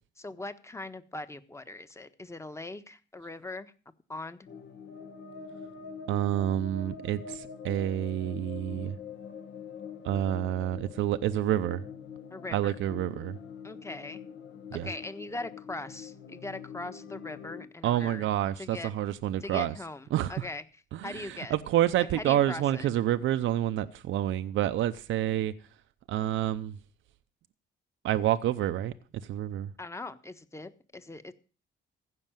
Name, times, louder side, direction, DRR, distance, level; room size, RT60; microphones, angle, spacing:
voice 1, 0.2-3.7 4.1-4.5 12.3-12.8 13.6-14.2 14.7-18.3 18.6-18.9 19.4-20.6 21.0-21.5 22.1-22.9 29.8-31.3, left 2 dB, 15° left, 1.2 m, -40 dB
sound 1, 4.5-17.7, left 6 dB, 60° left, 1.4 m, -44 dB
voice 2, 6.1-9.0 10.0-11.8 12.5-13.4 14.7-14.9 17.8-19.7 20.1-20.5 20.9-25.5 26.1-26.7 28.0-28.9 29.3-29.7, right 12 dB, 80° right, 0.7 m, -28 dB
15.5 x 6.2 x 9.0 m
cardioid pair, 90°, 20 cm